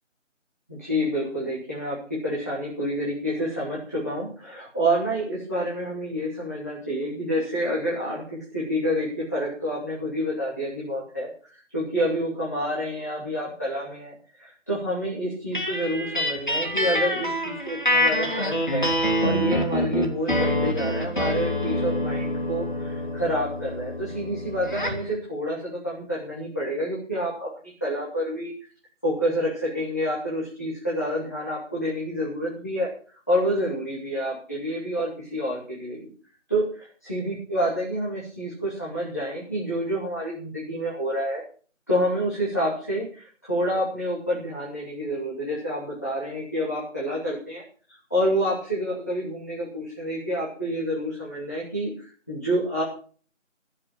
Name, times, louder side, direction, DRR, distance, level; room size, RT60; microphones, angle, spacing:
voice 1, 0.7-18.9 19.2-27.5 27.8-28.5 29.0-32.9 33.3-36.1 36.5-41.4 41.9-47.6 48.1-52.8, equal, 15° left, -8 dB, 2.8 m, -28 dB
sound 1, 15.5-25.1, left 1 dB, 40° left, 3.1 m, -26 dB
16.0 x 7.5 x 8.9 m, 0.43 s
figure-of-eight pair, 175°, 38 cm